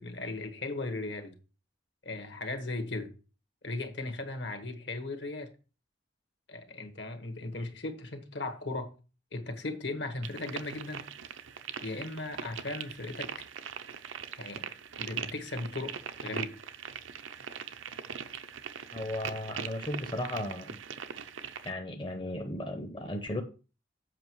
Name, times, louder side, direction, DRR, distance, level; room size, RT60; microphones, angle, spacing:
voice 1, 0.0-1.3 2.0-3.1 3.6-5.5 6.5-8.9 9.3-11.1 11.8-13.3 14.4-14.7 15.0-16.5, left 2 dB, 65° left, 1.5 m, -37 dB
sound 1, 10.2-21.7, right 7 dB, 85° right, 0.7 m, -41 dB
voice 2, 18.9-20.8 21.6-23.4, left 1 dB, 25° left, 0.7 m, -35 dB
7.8 x 5.6 x 4.6 m
head